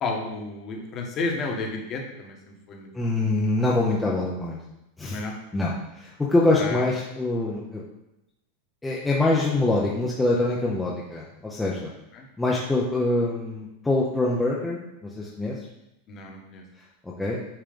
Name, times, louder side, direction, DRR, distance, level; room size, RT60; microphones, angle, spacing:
voice 1, 0.0-2.4 2.7-3.3 5.0-5.3 6.6-6.9 12.1-12.3 16.1-16.6, left 3 dB, 25° left, 1 dB, 1.3 m, -32 dB
voice 2, 2.9-4.6 5.0-5.2 5.5-7.8 8.8-11.9 12.4-15.6 17.0-17.4, left 2 dB, 5° left, -5 dB, 0.7 m, -24 dB
8.9 x 3.2 x 5.2 m, 0.90 s
supercardioid pair, 170°, 0 cm